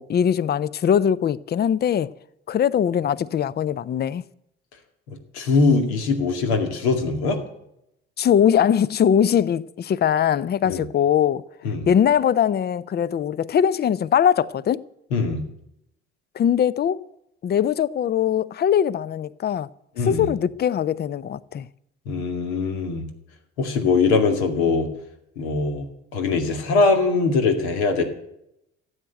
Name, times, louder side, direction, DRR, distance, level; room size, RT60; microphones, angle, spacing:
voice 1, 0.0-2.1 2.5-4.2 8.2-11.4 11.9-14.8 16.3-17.0 17.4-19.7 20.0-21.7, left 9 dB, 30° left, 0.6 m, -21 dB
voice 2, 5.3-7.4 10.7-10.8 11.6-11.9 15.1-15.4 20.0-20.3 22.1-23.1 23.6-24.9 25.4-25.9 26.1-28.0, left 4 dB, 70° left, 2.3 m, -21 dB
15.0 x 8.1 x 9.0 m
figure-of-eight pair, 55°, 34 cm